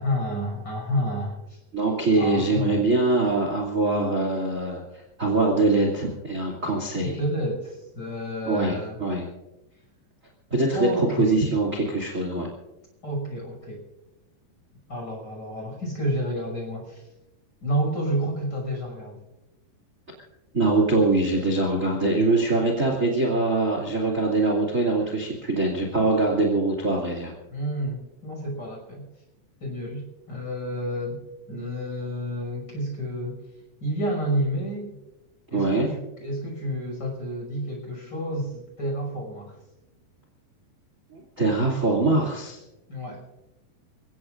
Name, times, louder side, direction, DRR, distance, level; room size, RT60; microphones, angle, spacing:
voice 1, 0.0-1.6 2.2-2.8 7.2-9.0 10.7-11.4 13.0-13.8 14.9-17.1 17.6-19.2 27.5-29.1 29.6-33.4 33.8-35.0 35.5-39.6 42.9-43.2, equal, 25° left, 1 dB, 6.5 m, -30 dB
voice 2, 1.7-4.8 5.2-7.2 8.5-9.2 10.5-12.5 20.5-27.3 35.5-35.9 41.1-42.6, right 2 dB, 25° right, 0 dB, 2.3 m, -23 dB
29.0 x 17.0 x 2.6 m, 0.98 s
omnidirectional pair, 4.7 m